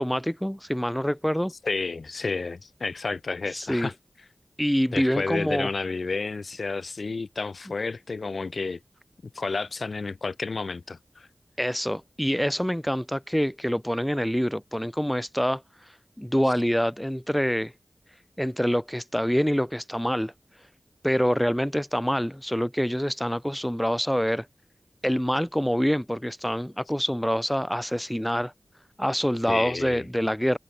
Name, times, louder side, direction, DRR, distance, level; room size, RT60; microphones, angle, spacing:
voice 1, 0.0-1.5 3.5-3.9 4.6-5.7 11.6-15.6 16.2-17.7 18.4-20.3 21.0-24.5 25.0-28.5 29.0-30.6, equal, 5° left, 0.8 m, -26 dB
voice 2, 1.6-3.9 4.9-8.8 9.3-11.3 29.5-30.1, left 4 dB, 70° left, 1.7 m, -31 dB
wide cardioid pair, 70°, 0 cm